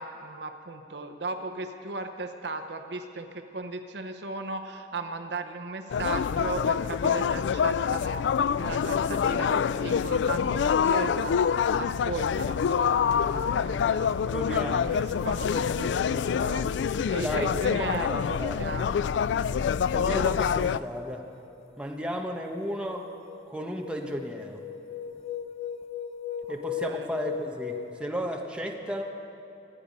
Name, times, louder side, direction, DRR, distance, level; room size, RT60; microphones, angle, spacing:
voice 1, 0.0-11.3 11.8-19.0 26.5-26.6 26.8-27.1, right 3 dB, 65° right, 6 dB, 0.8 m, -37 dB
sound 1, 5.9-20.8, left 7 dB, 80° left, 0.3 m, -26 dB
voice 2, 14.3-14.9 17.2-18.8 19.9-21.3 21.8-23.1 23.5-24.6 26.5-29.0, equal, 5° right, 1 dB, 1.1 m, -34 dB
sound 2, 21.0-21.3 21.8-28.0, left 7 dB, 35° left, 0.6 m, -38 dB
24.5 x 9.3 x 5.3 m, 2.9 s
head